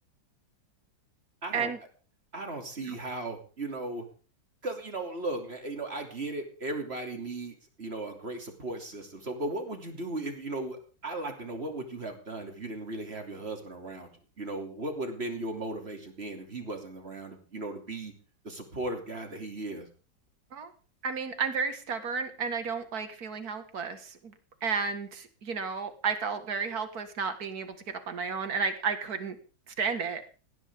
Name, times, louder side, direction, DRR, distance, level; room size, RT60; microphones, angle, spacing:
voice 1, 1.4-1.7 2.3-4.0 4.6-14.1 14.4-18.1 18.4-19.9, right 2 dB, 35° right, 4 dB, 3.1 m, -36 dB
voice 2, 21.0-24.3 24.6-27.8 28.1-29.4 29.7-30.2, right 5 dB, 55° right, 8 dB, 2.3 m, -32 dB
19.0 x 16.0 x 3.7 m, 0.36 s
omnidirectional pair, 2.0 m